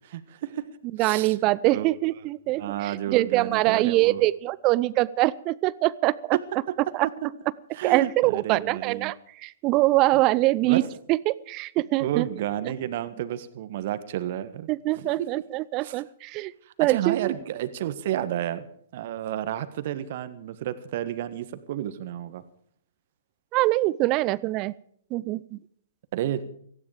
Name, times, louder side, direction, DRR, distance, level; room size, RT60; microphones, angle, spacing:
voice 1, 0.0-0.6 1.0-1.4 1.7-1.9 2.6-4.2 7.7-9.1 10.6-10.9 12.0-14.7 15.0-15.1 15.8-16.0 16.8-18.7 18.9-22.4 26.1-26.4, right 12 dB, 50° right, 12 dB, 1.5 m, -31 dB
voice 2, 1.0-6.4 6.9-7.1 7.8-9.2 9.4-10.8 11.1-12.3 14.7-16.5 16.8-17.3 23.5-24.7 25.1-25.6, right 18 dB, 35° right, 21 dB, 0.6 m, -23 dB
18.0 x 16.0 x 5.0 m, 0.64 s
figure-of-eight pair, 115°, 0 cm